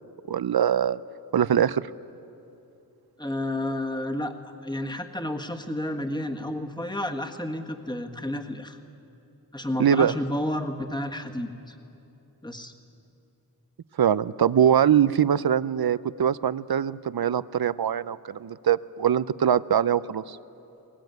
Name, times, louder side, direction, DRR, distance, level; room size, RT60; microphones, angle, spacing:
voice 1, 0.3-1.0 1.3-1.8 9.8-10.1 14.0-20.4, right 9 dB, 75° right, 17 dB, 0.6 m, -22 dB
voice 2, 3.2-4.3 4.6-8.8 9.5-11.7 12.4-12.7, left 1 dB, 10° left, 4 dB, 1.5 m, -31 dB
21.0 x 19.5 x 9.3 m, 2.9 s
wide cardioid pair, 70°, 38 cm